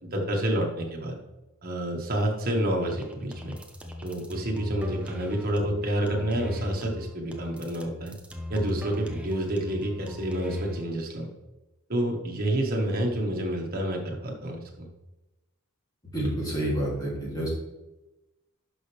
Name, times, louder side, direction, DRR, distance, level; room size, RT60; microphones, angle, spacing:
voice 1, 0.0-1.2 1.6-3.6 4.0-8.1 8.5-11.3 11.9-14.9, right 1 dB, 45° right, 0 dB, 1.8 m, -29 dB
sound 1, 2.8-10.8, left 1 dB, 5° right, 0.8 m, -38 dB
voice 2, 16.1-17.5, right 1 dB, 15° left, -6 dB, 3.1 m, -28 dB
11.0 x 5.8 x 3.5 m, 1.0 s
head